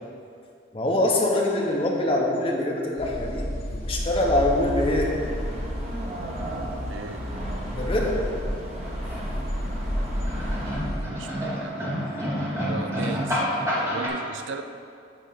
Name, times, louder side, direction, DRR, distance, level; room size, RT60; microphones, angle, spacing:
voice 1, 0.7-3.5 3.9-5.1 7.7-8.2 9.0-9.5, left 1 dB, 30° left, -2 dB, 1.1 m, -24 dB
sound 1, 3.0-11.0, equal, 50° left, 1.1 m, -31 dB
sound 2, 4.3-10.7, right 1 dB, 35° right, 1.1 m, -38 dB
voice 2, 6.9-7.2 11.0-11.9 12.6-14.6, right 4 dB, 75° right, 8 dB, 0.5 m, -37 dB
sound 3, 8.8-14.1, equal, 15° right, 1.3 m, -29 dB
9.0 x 3.7 x 6.8 m, 2.5 s
head